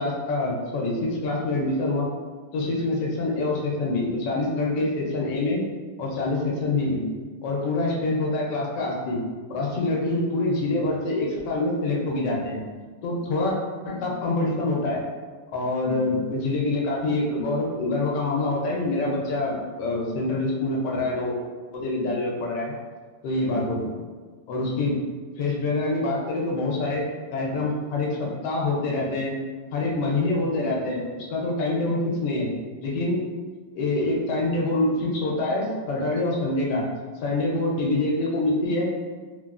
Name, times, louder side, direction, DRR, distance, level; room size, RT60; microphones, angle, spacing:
voice 1, 0.0-2.1 2.5-5.6 6.0-7.1 7.4-9.2 9.5-12.6 13.0-13.6 13.8-15.0 15.5-21.4 21.7-22.7 23.2-24.0 24.5-25.0 25.4-27.1 27.3-29.4 29.7-32.5 32.8-33.2 33.7-36.8 37.2-38.9, left 2 dB, 75° left, -2 dB, 1.2 m, -25 dB
3.2 x 2.2 x 2.3 m, 1.4 s
omnidirectional pair, 2.0 m